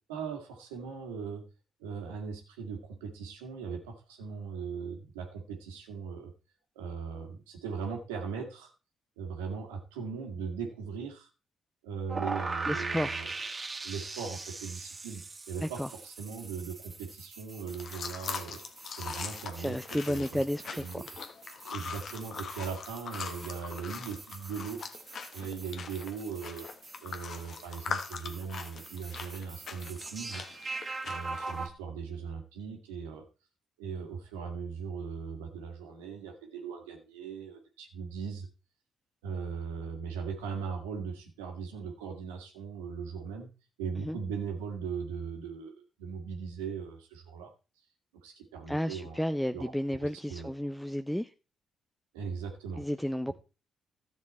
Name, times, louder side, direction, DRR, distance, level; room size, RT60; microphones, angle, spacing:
voice 1, 0.1-1.4 1.8-6.3 6.8-8.7 9.2-11.3 11.8-13.3 13.8-18.6 18.9-19.8 20.1-20.4 20.7-21.0 21.6-24.8 25.3-26.7 27.0-30.4 31.0-33.3 33.8-38.5 39.2-43.5 43.8-47.5 48.2-49.7 50.0-50.5 52.1-52.8, right 6 dB, 90° right, 1.9 m, -39 dB
sound 1, 12.1-31.7, right 3 dB, 35° right, 1.9 m, -42 dB
voice 2, 12.7-13.3 15.6-15.9 19.5-21.1 44.0-44.2 48.7-51.3 52.8-53.3, equal, 5° left, 0.7 m, -32 dB
sound 2, 17.7-31.7, left 5 dB, 60° left, 1.3 m, -42 dB
13.0 x 7.3 x 4.2 m
hypercardioid pair, 45°, 0 cm